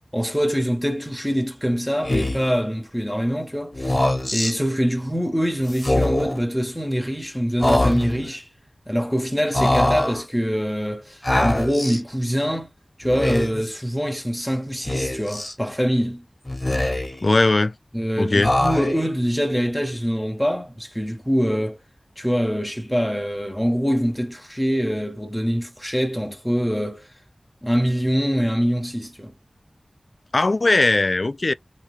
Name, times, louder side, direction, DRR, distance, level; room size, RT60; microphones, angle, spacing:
voice 1, 0.1-8.5 8.9-12.7 13.0-16.2 17.9-21.8 22.2-27.1 27.6-29.3, equal, 5° left, 1.2 m, -24 dB
Speech, 2.0-2.6 3.7-4.5 5.7-6.4 7.6-8.3 9.5-10.2 11.2-12.0 13.0-13.7 14.9-15.5 16.5-17.3 18.4-19.1, left 1 dB, 30° left, 1.3 m, -22 dB
voice 2, 17.2-17.7 18.2-18.5 30.3-31.5, left 2 dB, 60° left, 0.3 m, -19 dB
3.2 x 3.0 x 3.4 m
wide cardioid pair, 40°, 0 cm